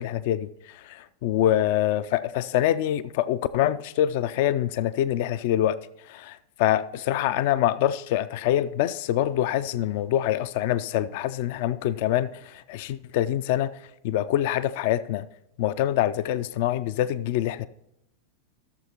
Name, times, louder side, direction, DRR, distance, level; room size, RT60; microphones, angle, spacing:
voice 1, 0.0-5.8 6.1-13.7 14.0-15.3 15.6-17.7, left 12 dB, 50° left, 0.3 m, -25 dB
15.0 x 7.0 x 2.9 m
figure-of-eight pair, 90°, 0 cm